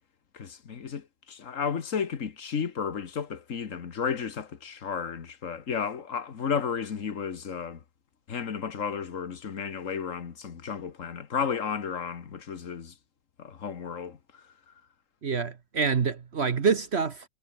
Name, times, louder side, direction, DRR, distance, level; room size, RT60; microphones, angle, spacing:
voice 1, 0.3-7.8 8.3-12.9 13.4-14.2, left 6 dB, 70° left, 1.8 m, -33 dB
voice 2, 15.2-17.2, right 5 dB, 55° right, 1.4 m, -26 dB
omnidirectional pair, 1.4 m